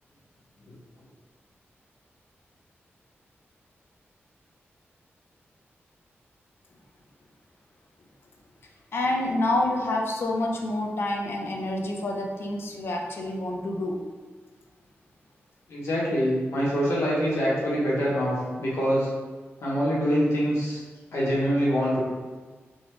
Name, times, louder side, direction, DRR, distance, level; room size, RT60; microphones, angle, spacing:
voice 1, 8.9-14.0, left 1 dB, 60° left, 0 dB, 0.4 m, -28 dB
voice 2, 15.7-19.1 19.6-20.8 21.1-22.0, equal, 85° left, -6 dB, 0.9 m, -25 dB
2.6 x 2.1 x 3.0 m, 1.4 s
wide cardioid pair, 90°, 5 cm